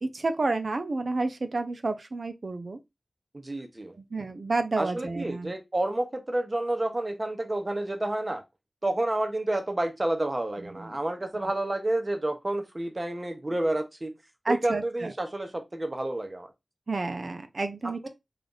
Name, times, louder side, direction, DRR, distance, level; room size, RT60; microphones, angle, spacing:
voice 1, 0.0-2.8 4.0-5.5 10.7-11.0 14.4-15.1 16.9-18.1, right 3 dB, 65° right, 0.5 m, -30 dB
voice 2, 3.4-3.9 4.8-8.4 8.8-14.1 14.5-16.5 18.0-18.1, right 1 dB, 35° right, 0.9 m, -29 dB
3.3 x 2.5 x 3.9 m
wide cardioid pair, 60°, 0 cm